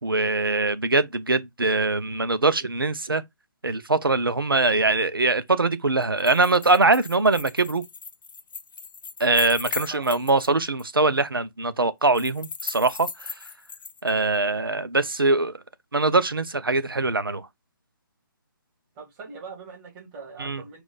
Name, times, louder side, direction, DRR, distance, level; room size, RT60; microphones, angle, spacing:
voice 1, 0.0-3.2 3.6-7.8 9.2-13.3 14.0-15.6 15.9-17.5 20.4-20.6, right 3 dB, 90° right, 0.7 m, -22 dB
sound 1, 6.0-10.5 10.8-10.9 12.1-14.1, left 5 dB, 70° left, 0.5 m, -37 dB
voice 2, 19.0-20.8, right 5 dB, 25° right, 1.9 m, -41 dB
4.9 x 2.5 x 3.9 m
figure-of-eight pair, 140°, 11 cm